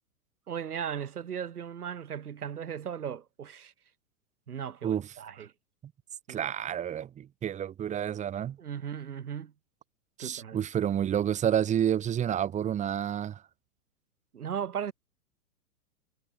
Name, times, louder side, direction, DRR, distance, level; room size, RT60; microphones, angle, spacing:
voice 1, 0.5-3.7 4.5-5.5 6.3-6.4 8.6-9.5 10.2-10.6 14.3-14.9, right 8 dB, 75° right, 1.4 m, -37 dB
voice 2, 6.3-8.6 10.2-13.4, right 10 dB, 15° right, 1.1 m, -29 dB
figure-of-eight pair, 110°, 46 cm